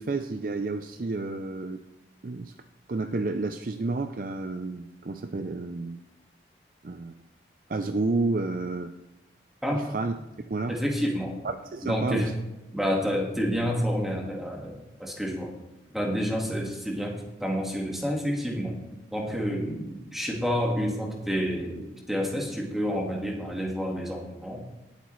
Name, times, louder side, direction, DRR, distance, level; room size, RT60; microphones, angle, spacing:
voice 1, 0.0-1.8 2.2-2.5 2.9-6.0 6.8-7.1 7.7-8.9 9.9-10.1 10.5-10.8 11.7-12.3, right 3 dB, 50° right, 7 dB, 0.5 m, -30 dB
voice 2, 10.7-11.4 11.8-12.3 12.7-15.5 15.9-18.8 19.1-24.6, equal, ahead, 0 dB, 1.7 m, -29 dB
18.5 x 8.2 x 3.2 m, 1.0 s
head